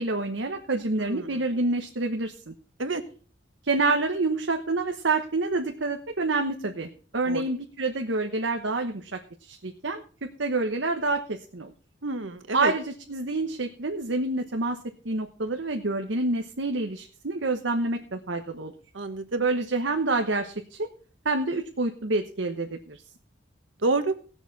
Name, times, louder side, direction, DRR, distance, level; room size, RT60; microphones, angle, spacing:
voice 1, 0.0-2.5 3.6-10.0 10.4-11.7 12.5-14.8 15.0-18.7 19.4-20.9 21.2-23.0, right 2 dB, 75° right, 4 dB, 1.1 m, -27 dB
voice 2, 12.0-12.7 18.9-19.4 23.8-24.1, right 3 dB, 90° right, 9 dB, 1.4 m, -28 dB
18.5 x 7.1 x 4.1 m, 0.41 s
head